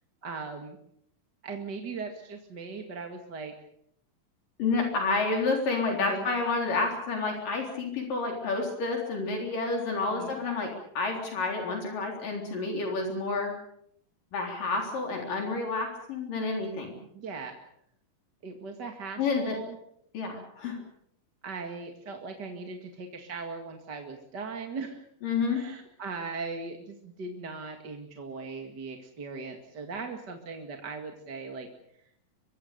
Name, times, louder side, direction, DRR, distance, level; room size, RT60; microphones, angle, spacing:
voice 1, 0.2-0.8 1.4-3.5 6.0-6.3 10.2-10.4 17.1-17.5 18.4-19.8 21.4-25.0 25.5-31.7, right 4 dB, 35° right, 4 dB, 2.2 m, -39 dB
voice 2, 4.6-13.5 14.3-16.9 19.2-19.6 20.1-20.8 25.2-25.6, left 3 dB, 70° left, 2 dB, 5.4 m, -29 dB
24.5 x 23.5 x 6.8 m, 0.71 s
omnidirectional pair, 4.0 m